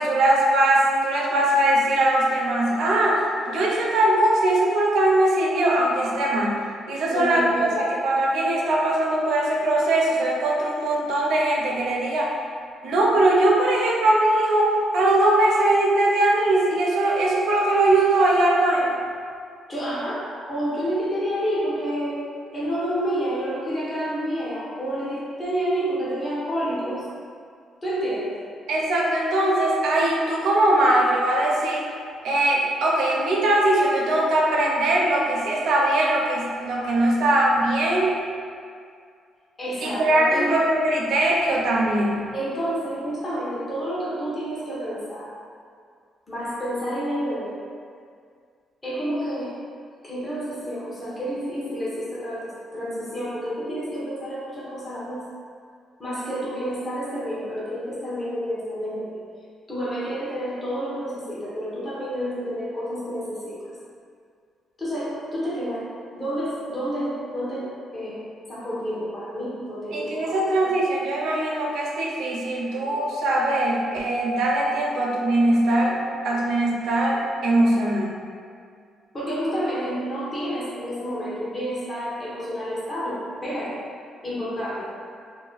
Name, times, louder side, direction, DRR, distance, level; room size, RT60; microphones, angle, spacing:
voice 1, 0.0-6.6 6.9-7.7 8.0-12.3 12.8-19.0 28.7-31.8 32.2-38.1 39.8-42.2 69.9-76.0 76.2-78.1, right 1 dB, 75° right, -2 dB, 0.6 m, -21 dB
voice 2, 7.1-7.9 19.7-22.2 22.5-27.0 27.8-28.4 39.6-40.6 42.3-45.3 46.3-47.6 48.8-49.5 50.0-55.2 56.0-59.2 59.7-63.7 64.8-68.2 68.5-70.4 79.1-83.8 84.2-84.9, equal, 30° left, -8 dB, 0.9 m, -29 dB
2.7 x 2.2 x 3.9 m, 2.2 s
cardioid pair, 90°, 0 cm